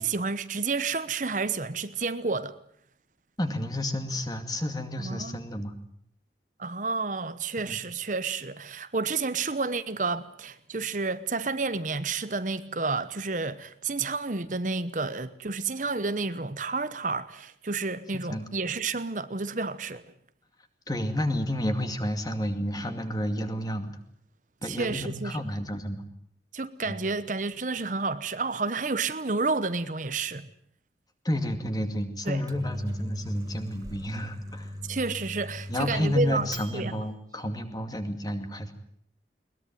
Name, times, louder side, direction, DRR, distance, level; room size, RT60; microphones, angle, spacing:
voice 1, 0.0-2.6 5.0-5.4 6.6-20.0 24.6-25.4 26.5-30.5 32.3-32.4 34.9-36.5 36.7-36.9, right 4 dB, 45° right, 1.0 m, -30 dB
voice 2, 3.4-5.7 7.6-7.8 18.3-18.5 20.9-24.0 24.6-26.0 26.9-27.0 31.2-34.7 35.7-38.7, left 1 dB, 20° left, 2.4 m, -30 dB
Microwave oven, 32.2-37.0, left 1 dB, 20° right, 1.9 m, -39 dB
21.5 x 21.0 x 9.2 m
head